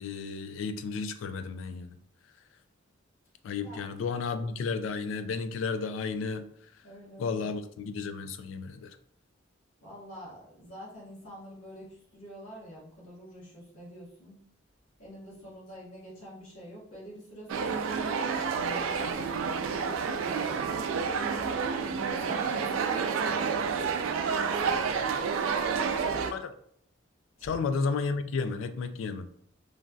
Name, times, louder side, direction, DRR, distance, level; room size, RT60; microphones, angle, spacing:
voice 1, 0.0-2.0 3.4-6.5 7.2-9.0 26.2-26.5 27.4-29.3, left 4 dB, 70° left, 10 dB, 0.3 m, -33 dB
voice 2, 6.8-7.4 9.8-14.4 15.0-20.8 21.2-25.3 27.4-27.6, equal, 90° left, -8 dB, 1.3 m, -46 dB
sound 1, 17.5-26.3, right 6 dB, 90° right, 0.3 m, -29 dB
3.1 x 2.5 x 2.3 m, 0.68 s
head